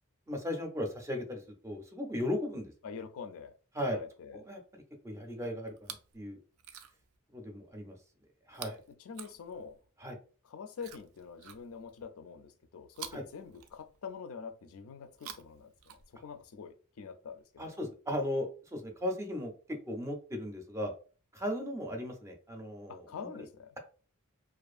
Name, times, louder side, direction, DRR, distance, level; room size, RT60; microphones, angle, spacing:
voice 1, 0.3-2.7 3.7-4.0 4.3-4.6 5.0-6.4 7.3-8.0 8.5-8.8 10.0-10.2 13.1-13.2 17.6-19.5 19.9-20.9 21.3-23.1, left 1 dB, 15° right, 0.5 m, -36 dB
voice 2, 2.8-3.5 3.8-4.4 9.0-9.8 10.4-15.7 16.1-17.8 22.9-23.8, left 6 dB, 75° left, 0.4 m, -45 dB
Chewing mastication, 5.7-6.2 6.5-7.2 8.5-9.9 10.8-12.0 12.9-14.2 15.0-16.5 17.4-17.5, right 9 dB, 70° right, 0.4 m, -49 dB
2.5 x 2.4 x 2.4 m
head